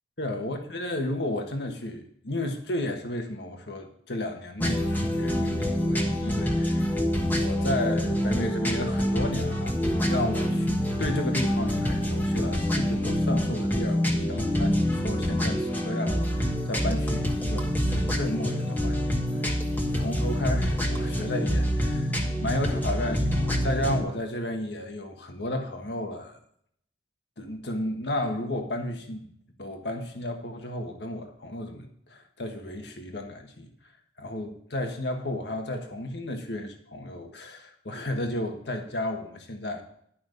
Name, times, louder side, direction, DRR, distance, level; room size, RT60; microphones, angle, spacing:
voice 1, 0.2-7.0 7.2-19.5 19.9-26.4 27.4-29.3 29.6-33.7 34.2-39.8, left 1 dB, 70° left, 4 dB, 1.5 m, -33 dB
sound 1, 4.6-24.0, equal, 10° left, 1.3 m, -26 dB
11.5 x 5.8 x 6.7 m, 0.66 s
head